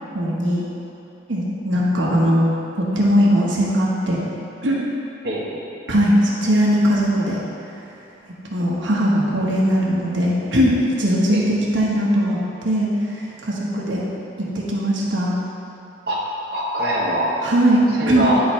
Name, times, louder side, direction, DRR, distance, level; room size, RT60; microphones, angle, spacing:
voice 1, 0.1-0.6 1.3-2.5 2.9-4.2 4.6-4.8 5.9-7.4 8.5-14.0 14.5-15.4 17.4-17.8 18.1-18.2, equal, 85° right, -5 dB, 1.2 m, -19 dB
voice 2, 5.2-5.6 11.3-11.5 16.1-16.2 16.5-17.4 17.7-18.4, right 1 dB, 55° right, -6 dB, 1.1 m, -23 dB
10.5 x 3.9 x 4.3 m, 2.9 s
head